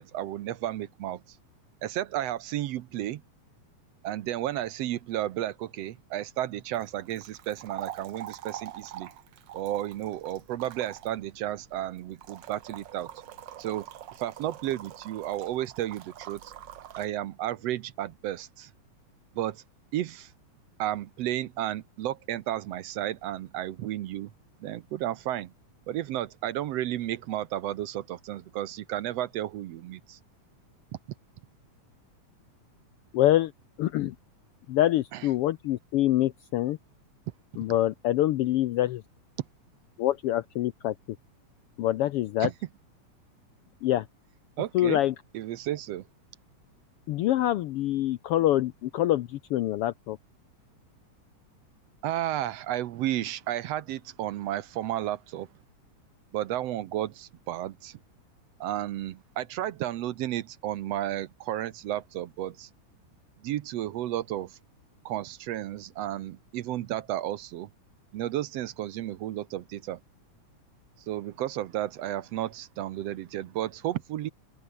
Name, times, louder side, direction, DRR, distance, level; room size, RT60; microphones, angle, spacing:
voice 1, 0.0-1.4 1.8-3.2 4.0-9.1 9.5-13.1 13.6-13.9 14.2-16.5 17.0-18.7 19.3-19.6 19.9-20.3 20.8-24.3 24.6-25.5 25.9-30.2 35.1-35.3 42.4-42.5 44.6-45.0 45.3-46.0 52.0-55.5 56.3-58.0 58.6-62.7 63.4-64.6 65.1-67.7 68.1-70.0 71.1-74.3, right 13 dB, 70° right, 1.7 m, -32 dB
sound 1, 6.7-17.1, right 11 dB, 90° right, 1.0 m, -44 dB
voice 2, 33.1-33.5 33.8-34.1 34.7-36.8 37.6-39.0 40.0-40.9 41.8-42.5 43.8-44.1 44.7-45.1 47.1-50.2, left 14 dB, 85° left, 1.3 m, -25 dB
open air
omnidirectional pair, 3.4 m